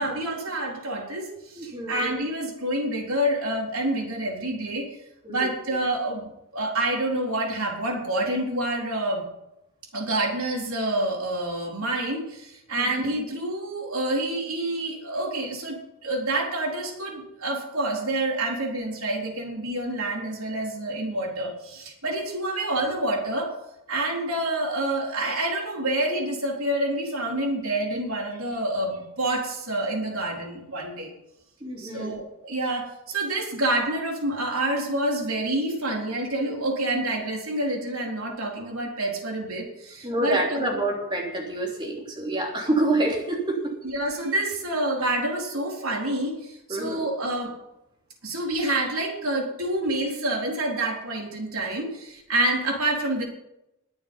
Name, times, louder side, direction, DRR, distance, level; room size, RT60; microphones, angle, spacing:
voice 1, 0.0-4.9 5.3-9.2 9.9-23.5 23.9-31.1 31.8-40.7 43.9-47.5 48.2-53.2, right 1 dB, 75° right, 0 dB, 4.0 m, -28 dB
voice 2, 1.6-2.0 5.2-5.5 12.8-13.0 31.6-32.2 40.0-43.7 46.7-47.0, right 2 dB, 20° right, 0 dB, 3.3 m, -27 dB
21.5 x 7.2 x 5.6 m, 0.86 s
head